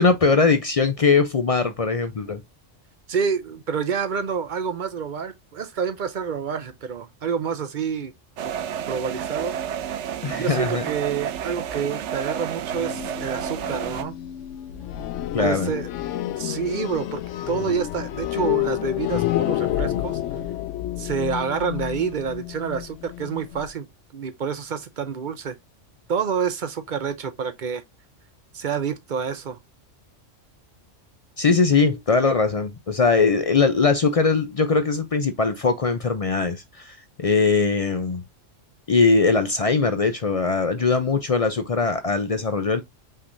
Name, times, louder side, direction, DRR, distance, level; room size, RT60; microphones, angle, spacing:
voice 1, 0.0-2.4 10.2-10.9 15.3-15.7 31.4-38.2 38.9-42.8, left 4 dB, 50° left, 0.4 m, -21 dB
voice 2, 3.1-8.1 8.4-8.6 8.9-9.6 10.4-14.2 15.4-15.9 16.4-20.2 21.0-23.9 24.1-25.6 26.1-27.8 28.5-29.6, right 6 dB, 50° right, 0.6 m, -28 dB
sound 1, 8.4-14.0, right 9 dB, 70° right, 0.9 m, -30 dB
sound 2, 12.7-23.7, left 13 dB, 75° left, 0.9 m, -29 dB
5.6 x 3.4 x 2.5 m
omnidirectional pair, 1.3 m